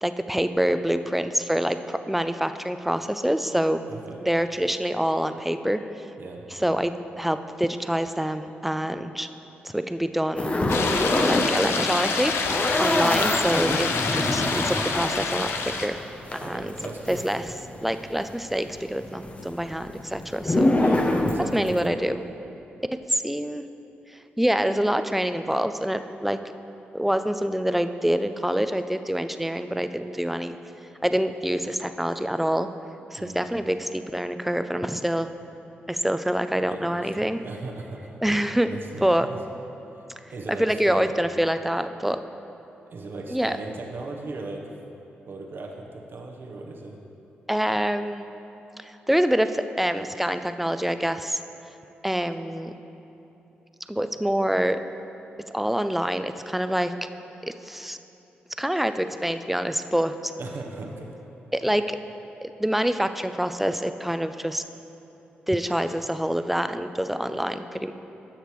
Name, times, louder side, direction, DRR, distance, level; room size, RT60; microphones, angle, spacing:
voice 1, 0.0-3.8 4.2-5.8 6.5-9.3 9.6-10.5 11.2-16.0 16.4-16.7 17.1-17.5 17.8-20.7 21.5-22.2 23.1-23.6 24.4-26.4 26.9-30.6 31.0-32.7 33.1-35.3 35.9-37.4 38.2-38.7 39.0-39.3 40.5-42.2 43.3-43.6 47.5-48.3 48.8-51.4 52.0-52.7 53.9-54.8 55.5-56.9 57.7-58.0 58.6-60.3 61.5-62.0 62.4-64.6 65.5-67.9, equal, 5° right, 10 dB, 0.4 m, -26 dB
sound 1, 10.4-11.5 11.8-18.0 18.2-21.9, left 1 dB, 30° left, 0.8 m, -25 dB
sound 2, 10.7-15.9, left 5 dB, 75° left, 0.6 m, -27 dB
voice 2, 13.0-13.3 16.4-17.2 20.7-22.0 33.2-33.5 36.5-38.4 38.7-39.4 40.3-41.1 42.9-44.7 45.3-47.0 60.4-61.2, right 3 dB, 60° right, 1 dB, 0.9 m, -38 dB
11.5 x 6.5 x 3.1 m, 3.0 s
supercardioid pair, 45°, 4 cm